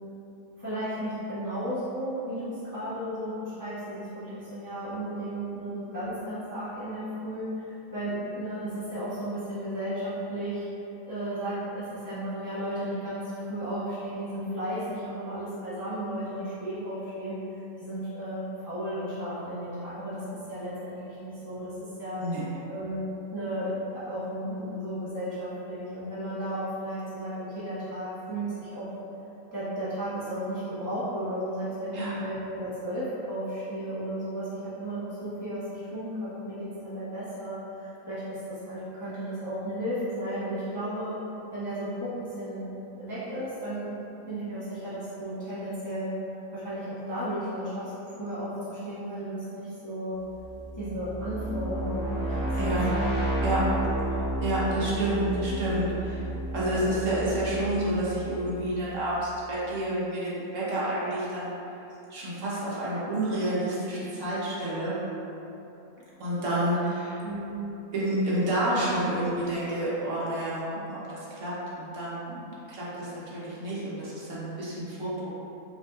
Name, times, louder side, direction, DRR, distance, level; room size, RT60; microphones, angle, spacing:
voice 1, 0.6-10.7 11.0-20.2 20.5-22.3 22.7-23.0 23.3-28.9 29.5-41.2 41.5-42.7 43.0-43.9 44.3-46.1 46.5-50.2 50.7-53.1 67.2-67.6, equal, 15° left, -12 dB, 0.9 m, -34 dB
sound 1, 50.3-59.1, right 1 dB, 40° left, 1.1 m, -31 dB
voice 2, 52.6-52.9 53.4-61.5 62.1-65.0 66.2-67.2 67.9-75.3, right 1 dB, 60° right, -8 dB, 1.3 m, -29 dB
5.6 x 3.4 x 2.4 m, 3.0 s
omnidirectional pair, 1.6 m